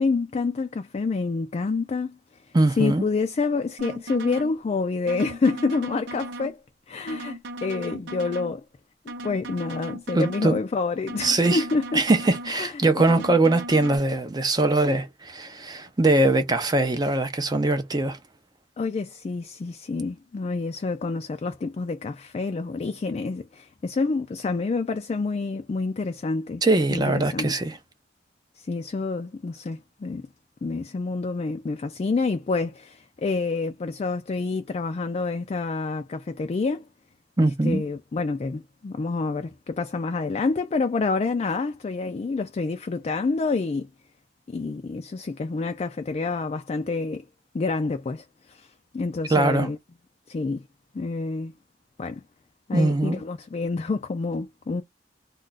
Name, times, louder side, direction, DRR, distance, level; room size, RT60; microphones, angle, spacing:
voice 1, 0.0-2.2 2.8-6.6 6.9-8.6 9.2-12.0 12.5-13.0 18.8-26.6 26.9-27.0 27.3-27.5 28.6-30.3 30.6-36.9 37.4-43.9 44.5-47.2 47.5-48.7 48.9-49.8 50.3-50.6 50.9-51.5 52.0-52.2 52.7-54.8, left 3 dB, 35° left, 0.3 m, -28 dB
voice 2, 2.5-3.1 10.1-10.6 11.2-11.6 11.9-18.2 26.6-27.8 37.4-37.8 49.3-49.7 52.7-53.2, right 2 dB, 25° right, 0.5 m, -22 dB
sound 1, 3.8-4.5 5.1-6.5 7.1-8.5 9.1-10.5 11.1-12.5 13.1-14.0, right 1 dB, 80° right, 0.8 m, -37 dB
2.3 x 2.3 x 3.9 m
head